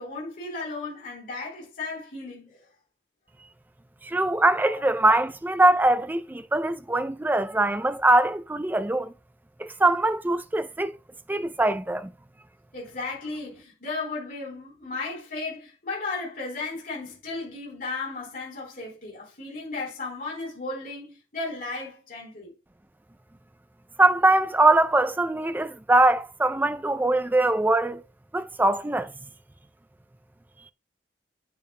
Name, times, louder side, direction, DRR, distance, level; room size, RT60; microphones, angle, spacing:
voice 1, 0.0-2.6 4.6-4.8 12.7-22.5, left 3 dB, 50° left, 4.1 m, -35 dB
voice 2, 4.0-9.1 9.6-10.9 11.3-12.1 24.0-28.0 28.3-29.1, right 2 dB, 10° right, 0.3 m, -22 dB
9.2 x 8.6 x 2.2 m
head